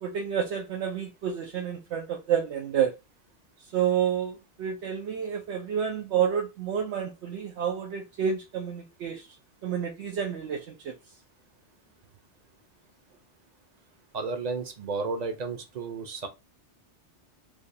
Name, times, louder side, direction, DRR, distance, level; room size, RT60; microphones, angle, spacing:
voice 1, 0.0-2.9 3.7-9.3 9.6-11.0, right 8 dB, 75° right, 0.9 m, -29 dB
voice 2, 14.1-16.3, right 4 dB, 45° right, 0.7 m, -32 dB
4.8 x 2.3 x 2.7 m
omnidirectional pair, 1.2 m